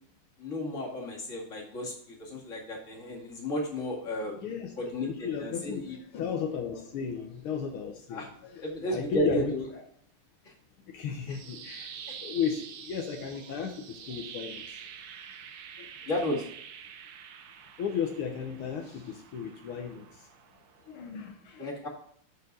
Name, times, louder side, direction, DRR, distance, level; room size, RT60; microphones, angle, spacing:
voice 1, 0.4-4.3 4.8-6.0 8.1-8.3 8.6-9.7 11.3-11.4 12.1-12.2 16.1-16.4 21.6-21.9, left 1 dB, 35° left, -2 dB, 2.5 m, -33 dB
voice 2, 4.4-4.8 5.0-9.5 10.8-14.8 15.8-15.9 17.8-20.3 20.9-21.7, left 7 dB, 80° left, 3 dB, 1.8 m, -35 dB
sound 1, 11.0-21.1, right 7 dB, 60° right, 1.1 m, -47 dB
9.3 x 4.4 x 5.4 m, 0.65 s
omnidirectional pair, 2.4 m